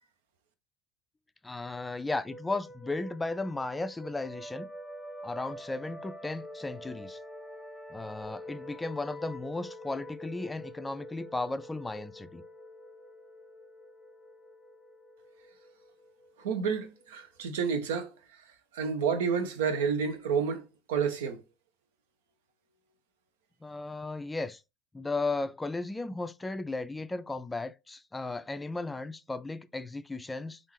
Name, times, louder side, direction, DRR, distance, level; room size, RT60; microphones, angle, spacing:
voice 1, 1.4-4.7 5.2-7.2 7.9-12.4 23.6-24.6 24.9-30.6, left 2 dB, 15° left, 0.3 m, -35 dB
sound 1, 2.3-17.6, equal, 5° right, 0.8 m, -46 dB
voice 2, 16.4-18.1 18.7-21.4, right 6 dB, 80° right, 0.6 m, -30 dB
3.5 x 2.4 x 3.0 m
hypercardioid pair, 70°, 0 cm